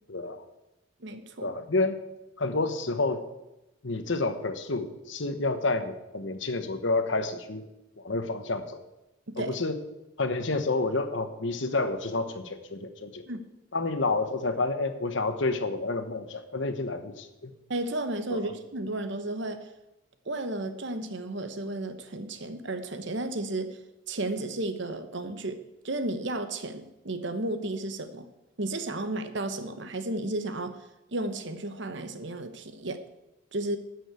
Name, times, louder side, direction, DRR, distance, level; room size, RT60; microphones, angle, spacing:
voice 1, 0.1-0.4 1.4-2.0 2.4-3.2 3.8-7.7 8.0-8.8 9.4-9.8 10.2-13.2 13.7-17.5 18.3-18.4, left 3 dB, 60° left, 9 dB, 1.1 m, -29 dB
voice 2, 1.0-1.5 9.3-9.6 13.3-13.4 17.7-19.7 20.3-23.8 24.1-28.3 28.6-33.0 33.5-33.8, right 2 dB, 60° right, 9 dB, 1.1 m, -33 dB
11.5 x 6.3 x 8.2 m, 0.95 s
head